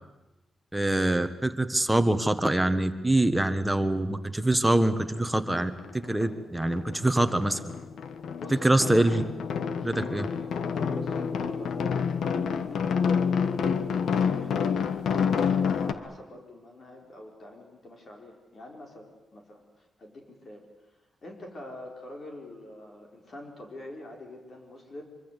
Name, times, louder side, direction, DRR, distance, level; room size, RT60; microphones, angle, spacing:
voice 1, 0.7-5.7 6.1-7.6 8.6-9.2 9.8-10.2, right 1 dB, 5° right, 8 dB, 1.5 m, -24 dB
sound 1, 4.7-4.8 5.2-6.4 6.6-15.9, left 6 dB, 80° left, 1.4 m, -28 dB
voice 2, 8.4-8.9 9.7-20.9 21.2-25.0, left 1 dB, 40° left, 1 dB, 4.7 m, -46 dB
24.5 x 24.5 x 8.3 m, 1.0 s
wide cardioid pair, 150°, 0 cm